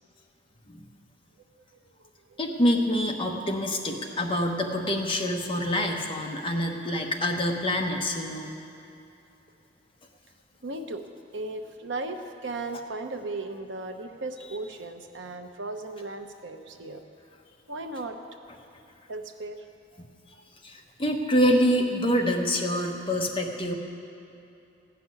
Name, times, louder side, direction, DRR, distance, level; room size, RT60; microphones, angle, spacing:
voice 1, 1.5-2.4 4.1-4.5 10.6-11.0 11.3-17.0 17.7-18.2 19.1-19.6 19.9-20.0, right 2 dB, 70° right, 6 dB, 0.9 m, -37 dB
voice 2, 2.4-8.5 20.6-23.7, equal, 30° left, 1 dB, 1.1 m, -26 dB
15.0 x 6.0 x 9.7 m, 2.8 s
head